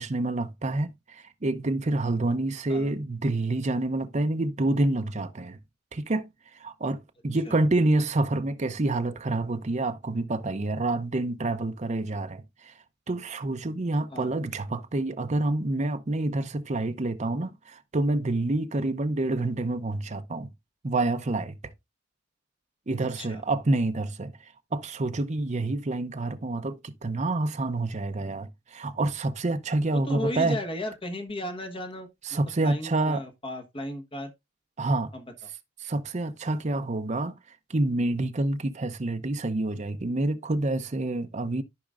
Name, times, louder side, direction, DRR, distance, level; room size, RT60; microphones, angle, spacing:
voice 1, 0.0-5.6 5.9-6.3 6.6-12.7 13.1-20.5 20.8-21.6 22.9-24.3 24.7-30.6 32.2-33.2 34.8-35.1 35.8-37.3 37.7-41.6, right 2 dB, 35° right, 0.7 m, -28 dB
voice 2, 29.9-34.3 35.1-35.2, left 1 dB, 25° left, 1.3 m, -35 dB
13.5 x 5.1 x 2.4 m
head